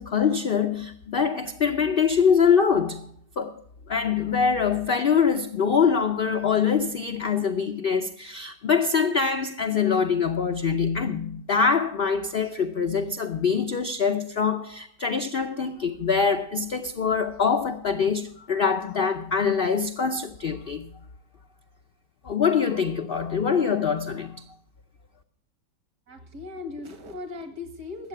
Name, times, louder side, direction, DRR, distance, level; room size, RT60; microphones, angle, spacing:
voice 1, 0.0-3.1 3.4-3.6 3.9-20.9 22.2-24.5, left 6 dB, 70° left, 0.5 m, -24 dB
voice 2, 26.1-28.1, left 3 dB, 60° right, 2.3 m, -38 dB
13.5 x 8.2 x 6.6 m
omnidirectional pair, 1.9 m